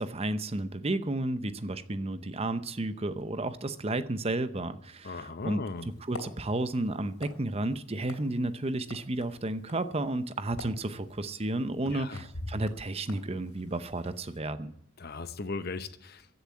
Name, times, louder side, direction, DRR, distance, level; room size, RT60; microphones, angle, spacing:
voice 1, 0.0-5.6 6.1-14.7, right 2 dB, 30° right, 0.7 m, -32 dB
voice 2, 5.0-5.9 11.9-12.2 15.0-16.3, left 3 dB, 45° left, 0.9 m, -37 dB
sound 1, 5.8-14.4, left 2 dB, 85° left, 3.1 m, -48 dB
15.0 x 7.1 x 9.4 m
head